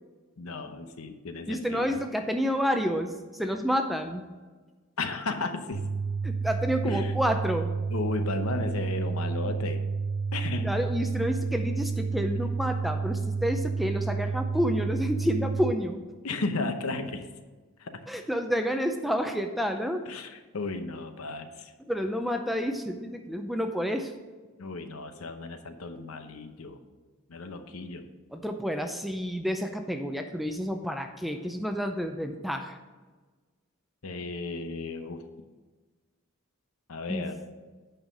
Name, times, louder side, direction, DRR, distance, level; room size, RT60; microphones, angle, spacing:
voice 1, 0.4-2.0 5.0-5.8 6.8-7.1 7.9-9.8 10.3-10.7 16.2-17.3 17.8-18.0 20.1-21.7 24.6-26.8 27.3-28.1 34.0-35.2 36.9-37.4, left 3 dB, 80° left, 8 dB, 0.8 m, -34 dB
voice 2, 1.5-4.2 6.2-7.7 10.6-16.0 18.1-20.0 21.9-24.1 28.3-32.8 37.1-37.2, equal, ahead, 5 dB, 0.4 m, -29 dB
sound 1, 5.7-15.7, right 4 dB, 90° right, 0.8 m, -30 dB
8.8 x 5.6 x 5.2 m, 1.3 s
head